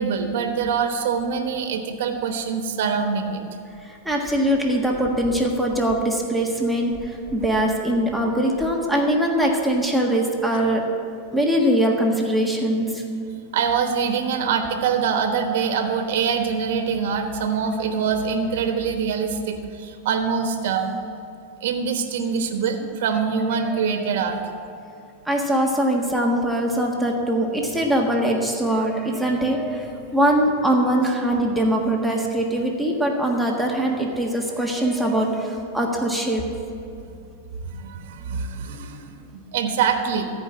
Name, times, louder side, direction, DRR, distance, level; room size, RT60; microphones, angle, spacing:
voice 1, 0.0-3.4 13.5-21.0 21.6-24.4 37.7-40.3, right 6 dB, 70° right, 5 dB, 1.2 m, -24 dB
voice 2, 3.8-10.8 11.3-13.0 18.0-18.1 23.6-24.1 25.2-36.5, right 1 dB, 5° right, -1 dB, 1.5 m, -22 dB
14.5 x 5.1 x 8.7 m, 2.6 s
supercardioid pair, 130°, 0 cm